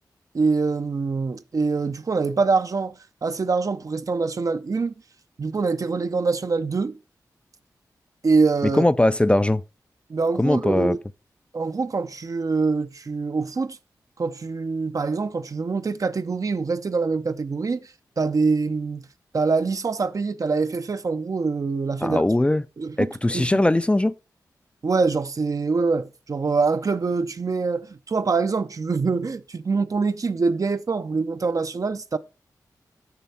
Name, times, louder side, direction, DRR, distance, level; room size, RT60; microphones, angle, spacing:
voice 1, 0.3-4.9 5.4-7.0 8.2-8.8 10.1-11.0 11.5-13.8 14.2-17.8 18.2-19.1 19.3-22.2 22.8-23.6 24.8-32.2, right 4 dB, 50° right, 0.5 m, -24 dB
voice 2, 8.6-9.6 10.4-11.0 22.0-22.6 23.0-24.1, left 1 dB, 15° left, 0.4 m, -20 dB
6.9 x 6.1 x 4.2 m
cardioid pair, 45°, 7 cm